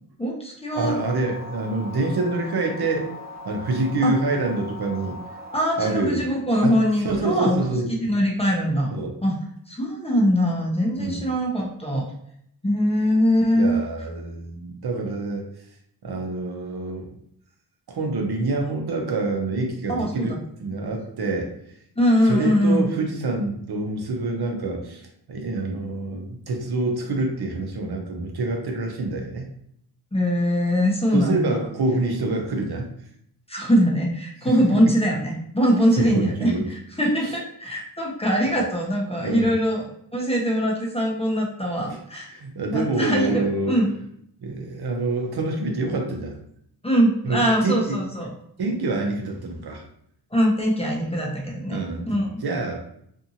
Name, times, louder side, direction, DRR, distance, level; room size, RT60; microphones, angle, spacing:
voice 1, 0.2-1.0 4.0-4.1 5.5-7.6 8.0-8.9 9.2-9.3 9.7-12.1 12.6-13.8 19.9-20.4 22.0-22.9 30.1-31.6 33.5-39.8 40.1-42.4 42.7-43.9 46.8-48.3 50.3-52.4, equal, 15° left, -1 dB, 0.7 m, -22 dB
sound 1, 0.7-5.7, left 2 dB, 25° right, 0.5 m, -39 dB
voice 2, 0.8-3.1 3.4-5.1 5.8-6.3 6.6-6.8 7.0-8.1 8.9-9.1 11.0-11.2 13.5-15.5 16.0-17.1 17.9-20.3 20.6-21.5 22.2-25.0 25.3-29.5 31.1-32.9 36.0-36.6 37.2-37.3 39.2-39.5 41.9-42.0 42.3-43.8 44.4-46.3 47.2-48.0 48.6-49.8 51.7-52.8, right 2 dB, 65° right, 2 dB, 0.7 m, -26 dB
2.6 x 2.5 x 2.7 m, 0.70 s
cardioid pair, 70°, 42 cm